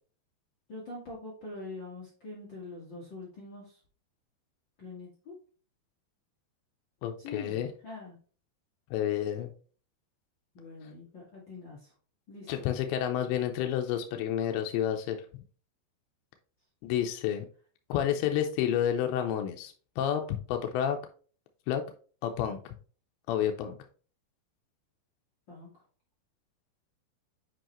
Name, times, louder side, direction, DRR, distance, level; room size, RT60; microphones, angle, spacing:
voice 1, 0.7-3.8 4.8-5.3 7.2-8.2 10.5-11.9 12.3-12.6 18.1-18.2 25.5-25.7, left 3 dB, 65° left, -5 dB, 1.1 m, -44 dB
voice 2, 7.0-7.7 8.9-9.5 12.5-15.4 16.8-17.5 17.9-21.0 21.7-21.8 22.2-22.8 23.3-23.8, left 10 dB, 85° left, 4 dB, 2.9 m, -30 dB
7.7 x 5.4 x 3.0 m, 0.41 s
omnidirectional pair, 5.1 m